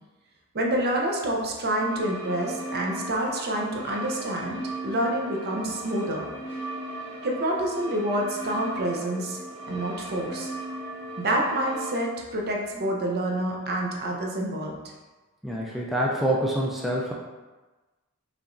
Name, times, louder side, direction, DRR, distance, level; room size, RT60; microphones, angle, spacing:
voice 1, 0.5-6.3 7.2-9.4 9.7-10.5 11.2-14.8, right 1 dB, 50° right, 0 dB, 0.6 m, -28 dB
sound 1, 1.8-12.0, right 1 dB, 30° right, 1.1 m, -37 dB
voice 2, 15.4-17.1, right 1 dB, ahead, -4 dB, 0.4 m, -26 dB
4.9 x 3.0 x 2.6 m, 1.2 s
head